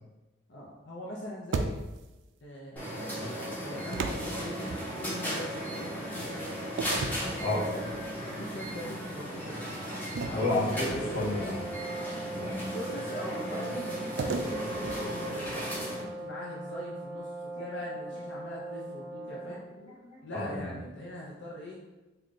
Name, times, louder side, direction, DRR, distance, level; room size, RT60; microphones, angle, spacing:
voice 1, 0.5-1.9 2.4-3.2 3.6-6.4 7.0-7.9 8.2-9.6 10.2-11.2 12.6-19.6 20.2-21.8, equal, 65° left, -4 dB, 0.6 m, -42 dB
sound 1, 1.5-2.2 3.9-5.3 6.8-8.1 8.6-8.8 10.1-11.7 14.2-15.8, right 3 dB, 70° right, 0.3 m, -36 dB
sound 2, 2.8-16.0, equal, 10° left, 1.0 m, -36 dB
voice 2, 10.3-11.6 12.3-12.6 19.5-20.7, left 2 dB, 35° left, -7 dB, 1.1 m, -32 dB
sound 3, 10.8-19.7, right 1 dB, 20° right, 0.7 m, -40 dB
3.6 x 2.2 x 3.8 m, 1.1 s
head